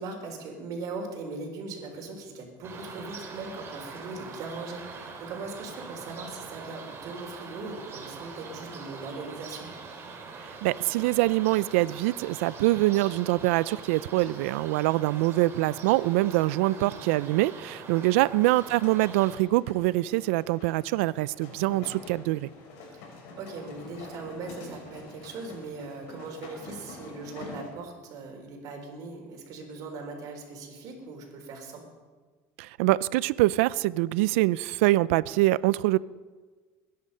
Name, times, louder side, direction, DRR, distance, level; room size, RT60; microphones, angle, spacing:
voice 1, 0.0-9.7 16.7-17.0 18.2-18.3 22.9-31.9, right 3 dB, 60° right, 3 dB, 4.1 m, -40 dB
sound 1, 2.6-19.4, right 4 dB, 40° right, 3.0 m, -43 dB
voice 2, 10.6-22.5 32.6-36.0, right 18 dB, 90° right, 20 dB, 0.4 m, -24 dB
sound 2, 18.5-27.7, left 3 dB, 80° left, 4.7 m, -46 dB
21.5 x 10.5 x 5.5 m, 1.4 s
supercardioid pair, 110°, 7 cm